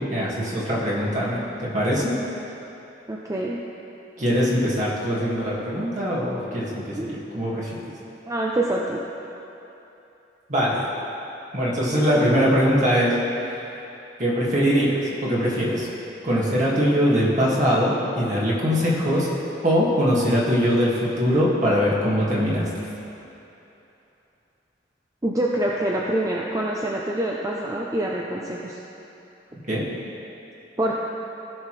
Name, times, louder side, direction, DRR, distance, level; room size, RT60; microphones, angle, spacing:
voice 1, 0.0-2.1 4.2-7.7 10.5-10.9 11.5-13.2 14.2-15.9 16.2-19.3 19.6-22.7 29.7-29.8, equal, 45° right, -6 dB, 1.9 m, -22 dB
voice 2, 3.1-3.6 7.0-7.2 8.3-9.0 25.2-28.8 30.8-31.0, right 1 dB, 20° right, -3 dB, 0.6 m, -25 dB
17.0 x 5.8 x 3.2 m, 2.9 s
head